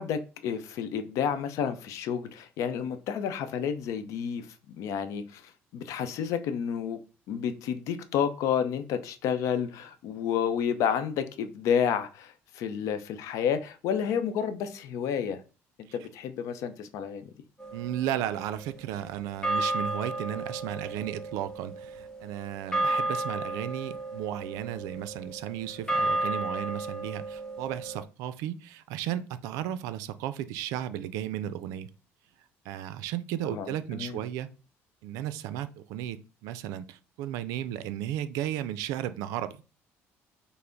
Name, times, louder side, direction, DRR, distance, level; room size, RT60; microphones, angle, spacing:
voice 1, 0.0-7.0 7.3-15.4 15.9-17.2 33.5-34.2, left 8 dB, 75° left, 0.6 m, -30 dB
sound 1, 17.6-18.9 19.4-28.0, right 2 dB, 10° left, 0.9 m, -33 dB
voice 2, 17.7-31.9 32.6-34.5 35.0-39.6, right 11 dB, 90° right, 0.4 m, -34 dB
5.6 x 2.0 x 3.8 m
cardioid pair, 115°, 6 cm